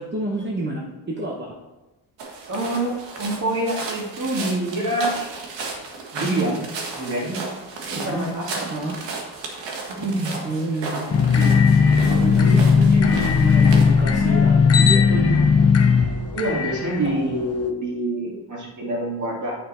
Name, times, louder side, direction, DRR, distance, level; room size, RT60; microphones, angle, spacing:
voice 1, 0.0-1.6 7.9-8.3 8.7-9.0 10.4-11.6 12.0-15.5, right 2 dB, 25° right, -2 dB, 1.0 m, -28 dB
sound 1, 2.2-13.9, right 3 dB, 85° right, 1.7 m, -34 dB
voice 2, 2.5-5.2 6.1-6.6 6.9-7.4 7.9-8.7 9.9-10.5 12.3-12.7 16.3-19.6, right 1 dB, 45° right, -1 dB, 2.3 m, -26 dB
sound 2, 11.1-17.7, left 5 dB, 35° left, 0.7 m, -17 dB
9.2 x 5.7 x 4.3 m, 1.1 s
wide cardioid pair, 140°, 42 cm